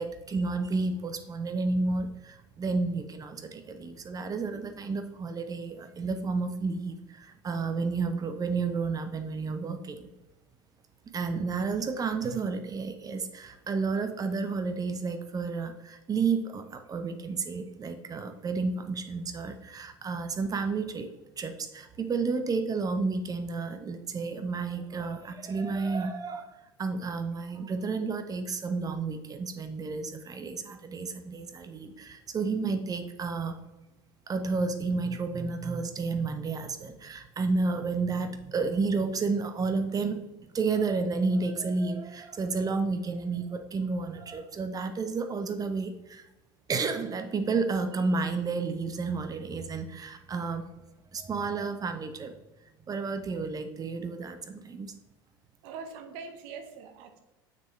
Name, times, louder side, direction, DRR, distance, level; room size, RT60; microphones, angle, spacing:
voice 1, 0.0-10.1 11.1-21.1 21.4-33.6 34.3-40.2 40.5-46.3 46.7-50.7 51.1-52.3 52.9-54.9, right 4 dB, 30° right, 8 dB, 0.8 m, -31 dB
voice 2, 55.6-57.2, right 5 dB, 65° right, 7 dB, 0.9 m, -42 dB
6.9 x 6.1 x 3.2 m, 1.0 s
hypercardioid pair, 80°, 12 cm